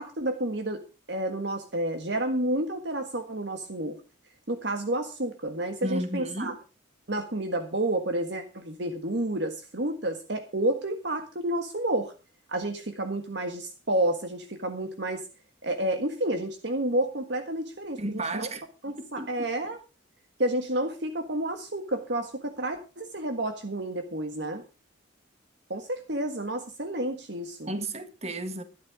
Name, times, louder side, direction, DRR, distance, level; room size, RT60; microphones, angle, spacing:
voice 1, 0.0-4.0 4.5-6.5 7.1-12.1 12.5-15.3 15.6-18.5 18.8-19.8 20.4-24.6 25.7-27.7, right 1 dB, 55° right, 1.6 m, -30 dB
voice 2, 5.8-6.6 18.0-18.6 19.0-19.3 27.7-28.6, right 1 dB, 30° right, 1.6 m, -33 dB
12.5 x 12.0 x 4.9 m
head